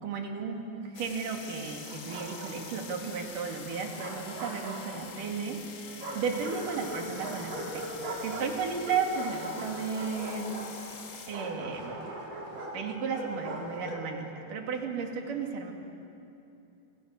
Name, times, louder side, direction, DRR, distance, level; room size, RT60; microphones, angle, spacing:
voice 1, 0.0-5.6 5.9-7.9 8.2-10.5 11.3-11.9 12.7-15.7, right 5 dB, 80° right, 2 dB, 4.0 m, -34 dB
sound 1, 0.9-11.5, left 5 dB, 45° left, 2.0 m, -46 dB
sound 2, 1.8-6.6 7.0-10.3, right 5 dB, 40° right, 1.8 m, -50 dB
Bark, 1.9-2.8 3.7-5.3 6.0-14.1, right 1 dB, 60° right, 5.1 m, -40 dB
29.0 x 26.5 x 6.6 m, 2.7 s
omnidirectional pair, 3.7 m